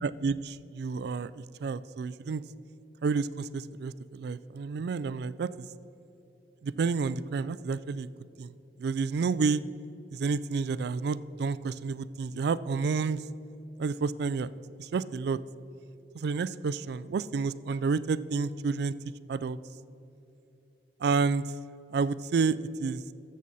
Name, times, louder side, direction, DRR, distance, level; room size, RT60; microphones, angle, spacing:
voice 1, 0.0-2.4 3.0-5.7 6.6-8.1 8.4-8.5 8.8-9.6 10.1-13.2 13.8-14.5 14.8-15.4 16.1-18.9 19.3-19.6 21.0-21.4 21.9-23.0, right 4 dB, 65° right, 17 dB, 0.3 m, -30 dB
13.5 x 7.4 x 4.1 m, 2.8 s
head